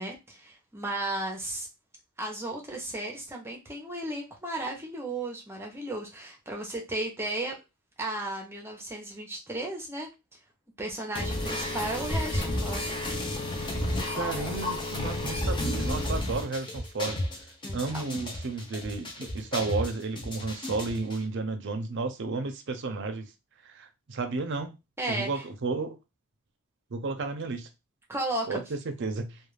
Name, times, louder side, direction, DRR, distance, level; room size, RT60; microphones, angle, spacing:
voice 1, 0.0-1.7 2.2-7.6 8.0-10.1 10.8-12.9 17.6-18.0 25.0-25.4 28.1-28.6, right 1 dB, 10° right, 0.7 m, -34 dB
sound 1, 11.1-21.2, left 1 dB, 25° left, 0.6 m, -32 dB
voice 2, 14.2-17.2 17.7-23.3 23.7-24.7 25.1-26.0 26.9-27.7 28.5-29.4, right 3 dB, 60° right, 0.5 m, -32 dB
2.4 x 2.3 x 3.2 m
head